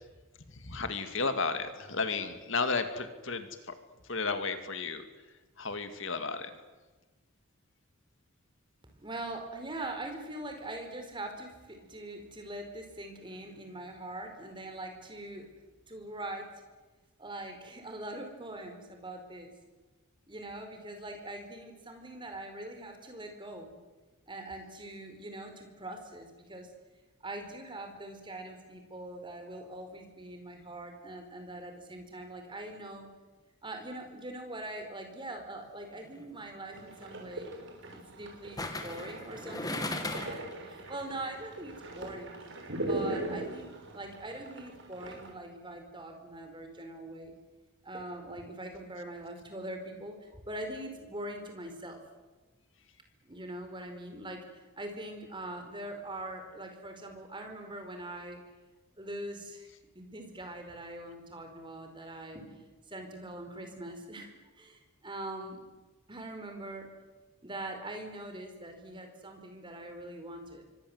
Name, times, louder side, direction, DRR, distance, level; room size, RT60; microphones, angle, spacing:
voice 1, 0.5-3.7 4.1-5.1 5.6-6.5, left 4 dB, 60° left, 8 dB, 2.3 m, -33 dB
voice 2, 9.0-15.5 15.9-16.6 17.2-19.5 20.3-23.8 24.3-26.7 27.2-33.1 33.6-37.5 37.9-42.4 42.8-47.3 47.8-52.0 53.2-58.4 59.0-59.7 59.9-65.6 66.1-66.9 67.4-70.6, right 1 dB, 20° right, 5 dB, 4.8 m, -42 dB
sound 1, 35.9-36.2 38.6-40.5 40.9-41.0, left 2 dB, 15° left, 2.2 m, -37 dB
sound 2, 36.7-45.3, right 1 dB, 55° right, 6.4 m, -40 dB
28.5 x 24.5 x 8.0 m, 1.2 s
head